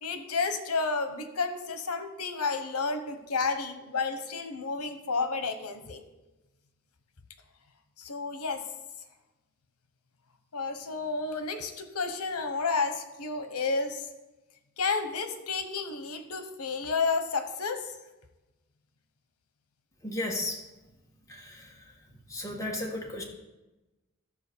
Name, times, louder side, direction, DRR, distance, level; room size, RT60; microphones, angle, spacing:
voice 1, 0.0-6.0 8.0-8.6 10.5-14.1 14.8-18.0, left 4 dB, 80° left, 8 dB, 1.1 m, -31 dB
voice 2, 20.0-20.9 21.3-23.2, left 1 dB, 15° left, -1 dB, 1.5 m, -36 dB
12.5 x 5.0 x 6.8 m, 1.1 s
head